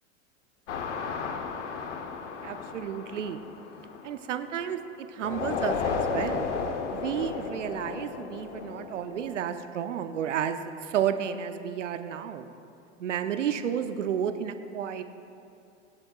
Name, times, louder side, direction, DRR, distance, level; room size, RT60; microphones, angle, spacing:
sound 1, 0.7-4.7 5.2-9.4, left 5 dB, 75° left, 1.0 m, -34 dB
voice 1, 2.4-3.4 4.0-6.5 6.9-12.5 13.0-15.0, right 9 dB, 80° right, 9 dB, 0.7 m, -31 dB
23.0 x 7.8 x 2.4 m, 2.6 s
hypercardioid pair, 90°, 36 cm